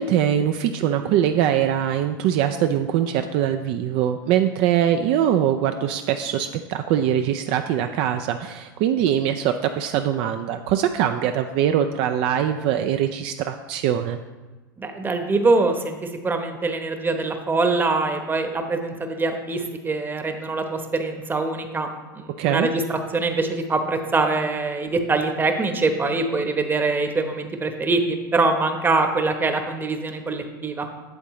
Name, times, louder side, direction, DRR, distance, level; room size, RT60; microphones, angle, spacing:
voice 1, 0.0-14.2 22.4-22.7, right 10 dB, 50° right, 7 dB, 0.4 m, -22 dB
voice 2, 14.8-21.9 22.1-30.9, right 3 dB, 20° right, 6 dB, 0.9 m, -24 dB
8.5 x 7.3 x 3.1 m, 1.3 s
hypercardioid pair, 90°, 11 cm